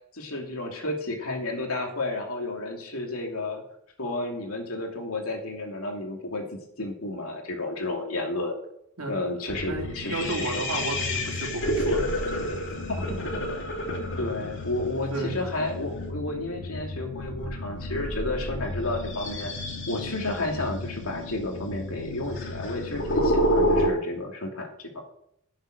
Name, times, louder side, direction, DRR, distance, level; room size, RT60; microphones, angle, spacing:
voice 1, 0.1-3.6 4.0-8.6 9.1-10.7 12.9-13.0 13.3-13.4 14.0-19.5 19.9-25.0, left 2 dB, 80° left, 2 dB, 2.8 m, -32 dB
sound 1, 9.5-23.9, left 1 dB, 60° left, 2.5 m, -30 dB
voice 2, 9.6-12.4 15.1-15.3, right 2 dB, 85° right, 1 dB, 2.9 m, -33 dB
11.5 x 7.9 x 6.5 m, 0.74 s
head